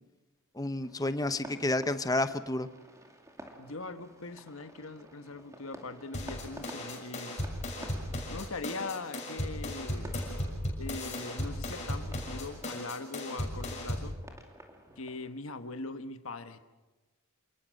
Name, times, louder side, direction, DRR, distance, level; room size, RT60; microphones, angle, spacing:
voice 1, 0.6-2.7, left 2 dB, 15° left, 11 dB, 0.9 m, -30 dB
sound 1, 0.8-15.3, right 1 dB, 15° right, 2.5 m, -52 dB
voice 2, 3.6-7.4 8.3-10.1 10.8-14.2 15.0-16.6, left 3 dB, 70° left, 9 dB, 1.4 m, -41 dB
sound 2, 6.1-14.1, left 1 dB, 35° left, 6.6 m, -36 dB
28.0 x 20.0 x 6.5 m, 1.2 s
head